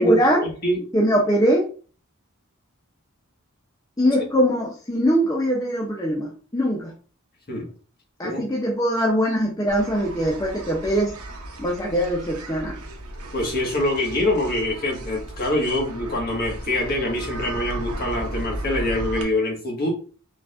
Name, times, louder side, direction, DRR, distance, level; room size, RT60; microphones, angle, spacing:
voice 1, 0.0-0.5 0.9-1.7 4.0-6.9 8.2-11.1 11.6-12.8, equal, 15° left, -1 dB, 0.7 m, -22 dB
sound 1, 9.7-19.2, right 1 dB, 90° right, 1.0 m, -35 dB
voice 2, 13.3-19.9, left 1 dB, 45° left, -1 dB, 1.6 m, -24 dB
4.7 x 4.2 x 2.5 m, 0.38 s
head